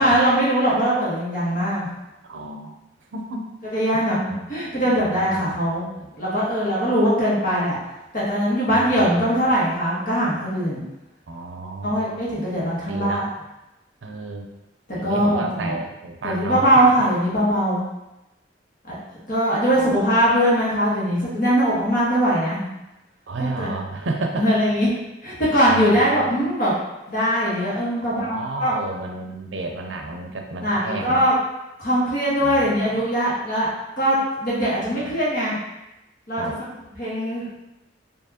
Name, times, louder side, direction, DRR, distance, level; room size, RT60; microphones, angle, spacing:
voice 1, 0.0-1.9 3.7-4.2 4.5-5.8 6.1-7.8 8.1-10.8 11.8-13.2 15.0-15.7 16.2-17.8 18.8-19.0 19.3-22.7 23.4-23.7 24.4-24.9 25.2-26.8 27.1-28.7 30.6-31.3 31.8-33.7 34.0-35.5 36.3-36.4 37.0-37.6, equal, 50° left, -7 dB, 1.4 m, -21 dB
voice 2, 2.2-2.7 3.1-3.5 3.9-4.5 4.8-6.1 8.9-9.1 11.3-12.0 12.9-13.3 14.0-14.5 14.9-16.7 19.7-20.2 23.3-24.5 25.7-26.2 28.0-31.3 32.4-33.0 34.8-35.2 36.4-36.6, right 2 dB, 70° right, 2 dB, 0.5 m, -32 dB
4.5 x 2.7 x 2.9 m, 0.97 s
head